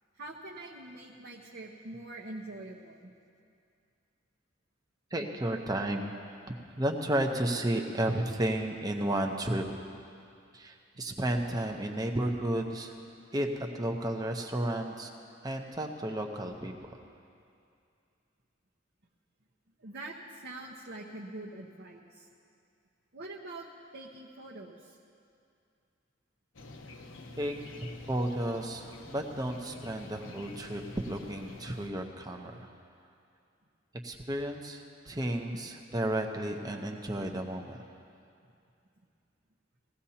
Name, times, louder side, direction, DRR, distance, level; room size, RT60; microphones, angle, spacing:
voice 1, 0.2-3.1 19.8-22.3 23.1-23.7 23.9-25.0, right 2 dB, 60° right, -4 dB, 1.1 m, -44 dB
voice 2, 5.1-6.2 6.4-9.7 10.5-12.9 13.3-13.5 13.7-15.1 15.4-16.7 27.4-27.5 28.1-30.8 31.1-32.7 34.0-37.8, right 1 dB, 20° right, 3 dB, 0.9 m, -32 dB
sound 1, 26.5-31.9, left 2 dB, 75° left, 0.9 m, -48 dB
20.0 x 16.0 x 2.9 m, 2.4 s
head